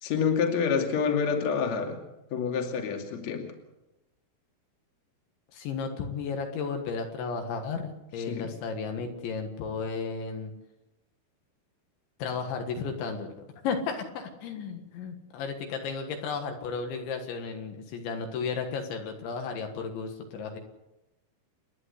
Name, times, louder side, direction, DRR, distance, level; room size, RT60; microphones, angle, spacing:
voice 1, 0.0-2.0 2.3-3.5 8.3-8.5, left 6 dB, 40° left, 3 dB, 3.1 m, -27 dB
voice 2, 5.5-10.5 12.2-13.3 13.6-20.6, left 5 dB, 70° left, 4 dB, 3.8 m, -34 dB
30.0 x 11.0 x 8.2 m, 0.98 s
omnidirectional pair, 5.7 m